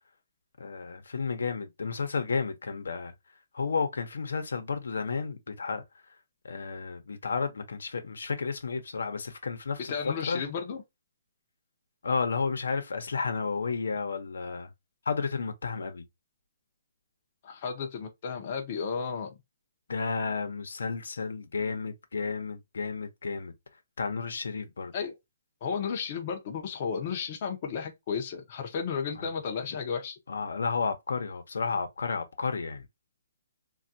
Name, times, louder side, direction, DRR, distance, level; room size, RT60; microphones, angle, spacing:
voice 1, 0.6-3.1 3.5-5.8 6.1-6.2 6.4-10.4 12.0-14.7 15.1-16.0 19.9-23.5 24.0-24.9 29.1-29.3 30.3-32.9, left 4 dB, 90° left, 0.8 m, -32 dB
voice 2, 9.9-10.8 17.4-19.3 24.9-25.1 25.6-30.2, left 6 dB, 25° left, 0.5 m, -33 dB
3.4 x 2.3 x 2.6 m
hypercardioid pair, 175°, 0 cm